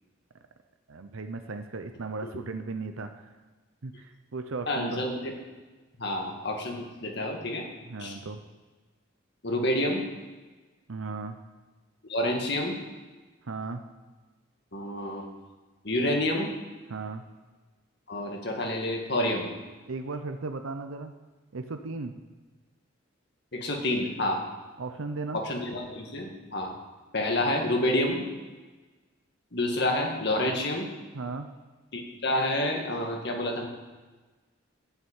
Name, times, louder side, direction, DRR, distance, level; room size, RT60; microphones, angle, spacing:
voice 1, 0.9-3.1 3.8-5.0 7.9-8.4 10.9-11.4 13.4-13.8 16.9-17.2 19.9-21.1 21.5-22.1 24.8-25.4 31.1-31.5, right 3 dB, 75° right, 7 dB, 0.7 m, -36 dB
voice 2, 4.7-5.3 6.0-7.6 8.0-8.2 9.4-10.0 12.1-12.8 14.7-15.3 15.8-16.5 18.1-19.5 23.5-24.4 25.3-26.7 27.1-28.2 29.5-30.9 31.9-33.7, left 1 dB, 55° left, 1 dB, 2.0 m, -28 dB
8.1 x 7.9 x 8.8 m, 1.3 s
head